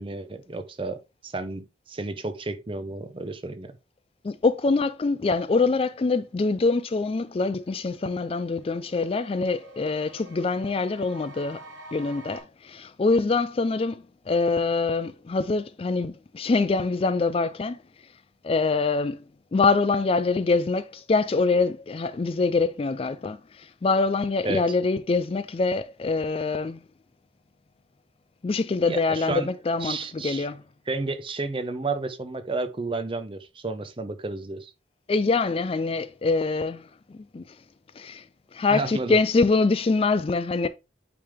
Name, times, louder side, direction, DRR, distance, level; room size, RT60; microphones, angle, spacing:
voice 1, 0.0-3.7 24.4-24.6 28.8-29.5 29.8-30.5 30.9-34.7 38.7-39.2, right 3 dB, 30° right, 0.7 m, -31 dB
voice 2, 4.2-11.6 11.9-17.8 18.4-19.2 19.5-26.8 28.4-30.6 35.1-36.8 37.3-37.4 38.0-38.2 38.5-40.7, left 3 dB, 30° left, 0.3 m, -24 dB
sound 1, 7.1-12.4, right 1 dB, 70° right, 3.0 m, -48 dB
8.6 x 3.5 x 3.5 m
head